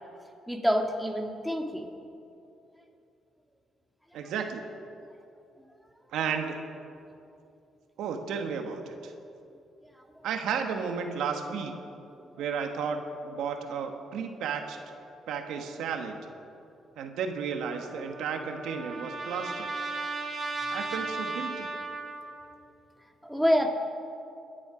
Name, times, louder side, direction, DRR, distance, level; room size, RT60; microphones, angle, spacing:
voice 1, 0.5-1.9 23.2-23.7, equal, ahead, 2 dB, 1.8 m, -26 dB
voice 2, 4.1-4.6 6.1-6.6 8.0-9.1 10.2-11.8 12.4-14.8 15.3-16.2 17.0-19.7 20.7-21.7, right 6 dB, 85° right, 5 dB, 1.4 m, -33 dB
Trumpet, 17.7-22.5, right 3 dB, 35° right, 2.4 m, -36 dB
23.0 x 10.5 x 5.0 m, 2.7 s
cardioid pair, 90°, 0 cm